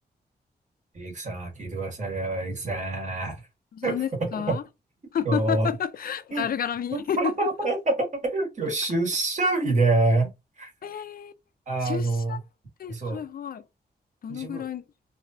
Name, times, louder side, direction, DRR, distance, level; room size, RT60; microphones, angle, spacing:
voice 1, 0.9-3.4 3.8-4.6 5.2-5.7 6.3-6.5 6.9-10.3 10.6-10.7 11.7-12.4 12.9-13.2 14.3-14.6, right 2 dB, 45° right, 1.6 m, -26 dB
voice 2, 3.7-4.6 5.1-7.2 10.8-11.3 11.8-12.4 12.8-13.6 14.2-14.8, left 8 dB, 60° left, 0.5 m, -31 dB
3.2 x 2.7 x 2.7 m
wide cardioid pair, 125°, 17 cm